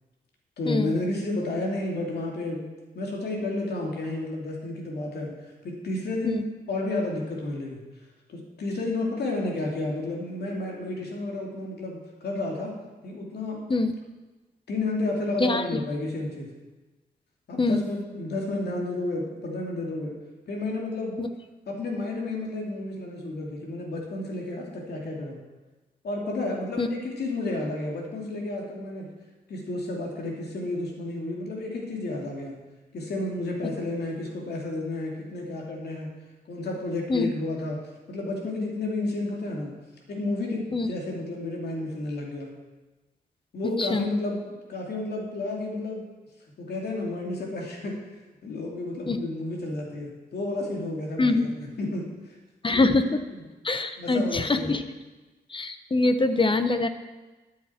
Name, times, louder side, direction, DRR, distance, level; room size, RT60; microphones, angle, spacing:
voice 1, 0.6-5.3 5.6-6.4 6.7-7.8 8.3-12.7 13.0-13.6 14.7-16.5 17.5-20.1 20.5-21.2 21.7-25.4 26.0-29.1 29.5-32.6 32.9-36.1 36.5-37.8 38.1-39.7 40.1-42.5 43.5-44.4 44.7-46.1 46.6-48.0 48.4-52.4 52.7-52.8 54.0-54.8, left 2 dB, 80° left, -1 dB, 2.6 m, -31 dB
voice 2, 15.4-15.8 17.6-17.8 21.2-21.3 26.8-26.9 37.1-37.3 40.7-40.9 43.8-44.1 49.1-49.2 51.2-51.5 52.6-53.2 53.6-54.8 55.5-56.9, left 3 dB, 30° left, 9 dB, 1.0 m, -24 dB
13.0 x 9.5 x 4.4 m, 1.2 s
cardioid pair, 75°, 17 cm